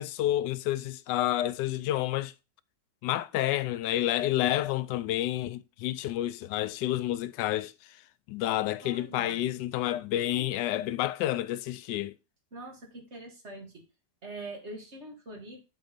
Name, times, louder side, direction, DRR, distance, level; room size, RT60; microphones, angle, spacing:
voice 1, 0.0-2.3 3.0-8.0 8.3-12.1, left 13 dB, 85° left, 1.2 m, -29 dB
voice 2, 8.8-9.5 12.5-13.8 14.2-15.7, right 2 dB, 40° right, 2.1 m, -44 dB
8.2 x 3.9 x 5.1 m
omnidirectional pair, 1.8 m